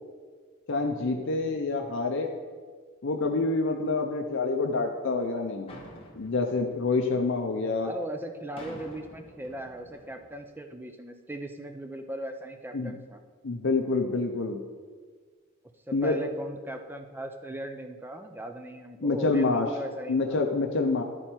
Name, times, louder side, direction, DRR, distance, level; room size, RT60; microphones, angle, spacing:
voice 1, 0.7-2.3 3.0-5.8 6.1-7.9 12.7-12.9 13.4-14.6 15.9-16.2 19.0-19.7 20.1-21.0, left 3 dB, 60° left, 3 dB, 0.6 m, -27 dB
sound 1, 5.7-7.6 8.6-10.5, left 1 dB, 25° left, 1.1 m, -49 dB
voice 2, 7.8-13.2 15.9-20.4, right 1 dB, 10° right, 6 dB, 0.5 m, -38 dB
12.0 x 4.4 x 4.3 m, 1.5 s
head